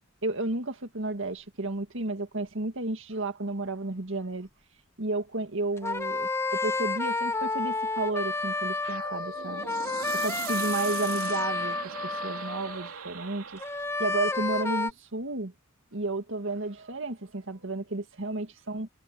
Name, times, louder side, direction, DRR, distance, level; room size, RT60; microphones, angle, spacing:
voice 1, 0.2-4.5 5.0-9.6 10.1-13.6 14.0-15.5 15.9-18.9, right 2 dB, 60° right, 2.0 m, -32 dB
sound 1, 5.8-12.9 13.6-14.9, left 3 dB, 10° left, 0.8 m, -30 dB
sound 2, 8.8-13.9, right 7 dB, 75° right, 3.2 m, -39 dB
head